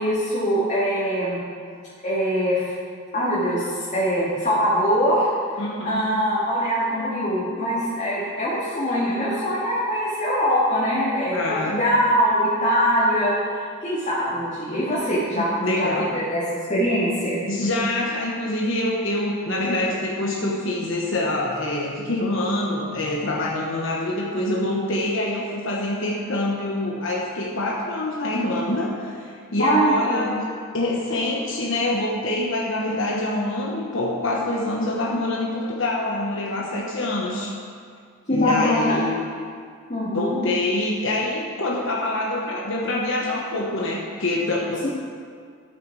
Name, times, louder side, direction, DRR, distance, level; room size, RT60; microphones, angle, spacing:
voice 1, 0.0-1.4 2.0-2.6 3.1-5.3 5.8-16.4 16.7-17.4 29.6-30.3 38.3-39.0 39.9-40.4, equal, 35° left, -10 dB, 2.2 m, -22 dB
voice 2, 5.6-6.1 11.3-11.8 15.4-16.1 17.5-37.5 38.3-39.2 40.1-44.9, left 2 dB, 60° left, -2 dB, 1.2 m, -25 dB
12.5 x 8.4 x 4.8 m, 2.2 s
head